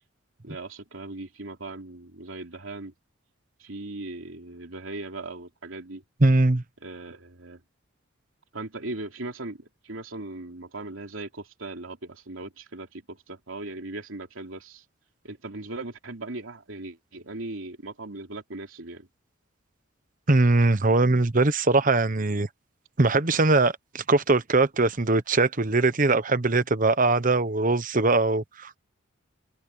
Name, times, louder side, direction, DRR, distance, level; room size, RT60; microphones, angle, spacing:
voice 1, 0.4-2.9 3.6-6.0 6.8-7.6 8.5-14.8 15.2-19.1, right 2 dB, 80° right, 3.0 m, -38 dB
voice 2, 6.2-6.6 20.3-22.5 23.0-28.8, right 2 dB, 40° right, 1.0 m, -21 dB
head